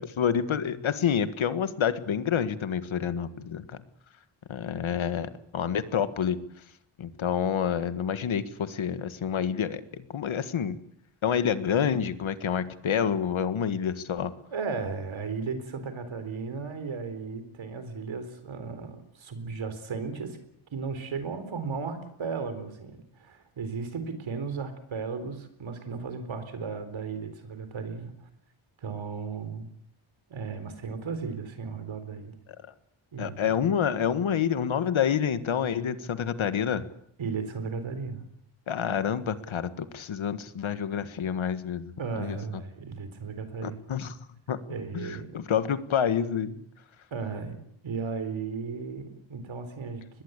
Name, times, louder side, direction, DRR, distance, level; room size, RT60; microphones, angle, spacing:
voice 1, 0.0-3.8 4.5-6.4 7.0-10.8 11.2-14.3 33.2-36.9 38.7-41.9 42.2-42.4 43.6-44.1 44.5-44.6 44.9-46.6, left 8 dB, 75° left, 12 dB, 1.7 m, -28 dB
voice 2, 14.5-20.4 20.7-28.1 28.8-29.7 30.3-32.4 33.1-33.5 37.2-38.3 42.0-43.8 44.7-45.4 47.1-47.6 47.8-50.2, right 5 dB, 70° right, 10 dB, 4.2 m, -35 dB
23.0 x 21.0 x 8.2 m, 0.70 s
wide cardioid pair, 175°, 48 cm